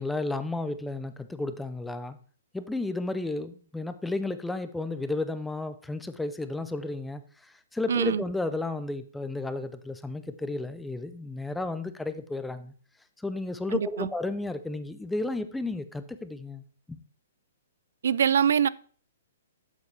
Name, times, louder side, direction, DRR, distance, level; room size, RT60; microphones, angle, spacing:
voice 1, 0.0-2.2 2.5-12.7 13.2-17.0, left 2 dB, 5° left, 11 dB, 0.4 m, -33 dB
voice 2, 7.9-8.2 13.7-14.1 18.0-18.7, right 8 dB, 75° right, 21 dB, 0.3 m, -24 dB
8.0 x 7.3 x 3.2 m, 0.43 s
hypercardioid pair, 150°, 0 cm